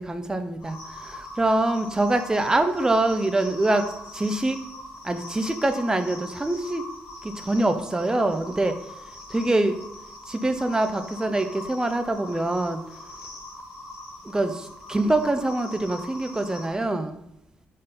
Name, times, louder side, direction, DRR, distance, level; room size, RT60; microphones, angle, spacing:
voice 1, 0.0-4.6 5.0-6.8 7.2-8.8 9.3-9.8 10.3-12.8 14.2-17.2, right 2 dB, 15° right, 7 dB, 0.7 m, -24 dB
sound 1, 0.6-16.7, left 1 dB, 70° left, 2.1 m, -41 dB
5.5 x 5.3 x 4.1 m, 0.86 s
cardioid pair, 75°, 4 cm